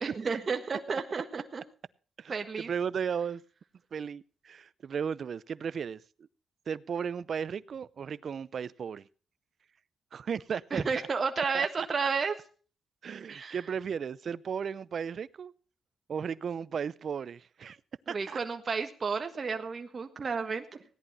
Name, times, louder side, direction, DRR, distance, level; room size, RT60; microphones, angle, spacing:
voice 1, 0.0-1.6 2.3-2.7 10.7-12.3 13.3-13.6 18.1-20.8, right 5 dB, 45° right, 1.5 m, -32 dB
voice 2, 2.7-3.4 3.9-6.0 6.7-9.0 10.1-10.8 11.5-11.7 13.0-15.5 16.1-17.8 18.1-18.4, right 7 dB, 60° right, 0.6 m, -35 dB
17.0 x 11.0 x 4.2 m
cardioid pair, 70°, 0 cm